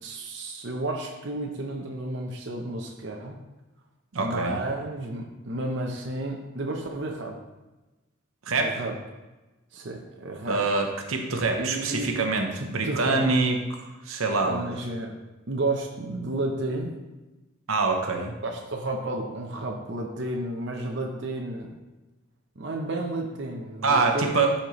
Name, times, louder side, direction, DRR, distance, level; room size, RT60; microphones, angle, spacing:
voice 1, 0.0-3.4 4.2-7.4 8.5-9.0 9.7-10.6 11.6-12.2 12.5-13.3 14.4-15.1 15.5-17.0 18.4-21.7 22.6-24.4, right 2 dB, 55° right, 1 dB, 0.8 m, -32 dB
voice 2, 4.1-4.6 8.5-8.8 10.5-14.6 17.7-18.3 23.8-24.5, right 3 dB, 85° right, 3 dB, 0.9 m, -25 dB
12.0 x 4.3 x 3.1 m, 1.1 s
head